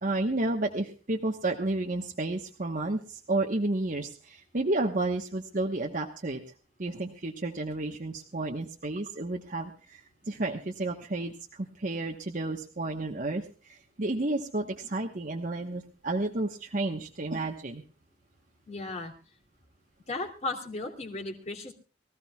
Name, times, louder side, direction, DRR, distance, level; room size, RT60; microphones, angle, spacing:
voice 1, 0.0-6.4 6.8-13.4 13.7-17.8, right 2 dB, 50° right, 1 dB, 1.2 m, -31 dB
voice 2, 18.7-19.1 20.1-21.7, left 2 dB, 40° left, 3 dB, 2.7 m, -35 dB
24.0 x 15.0 x 2.3 m, 0.37 s
head